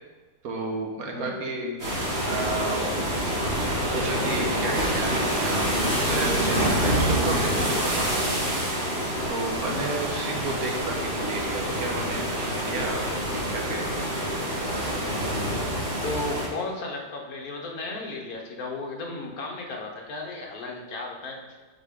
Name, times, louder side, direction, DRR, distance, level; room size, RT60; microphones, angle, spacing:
voice 1, 0.4-1.8 2.3-3.0 3.6-8.4 9.3-13.9, right 2 dB, 60° right, 1 dB, 1.5 m, -32 dB
sound 1, 1.8-16.5, equal, 35° right, 2.7 m, -26 dB
voice 2, 16.0-21.4, left 2 dB, 60° left, 0 dB, 1.6 m, -34 dB
8.0 x 6.1 x 3.7 m, 1.3 s
omnidirectional pair, 1.8 m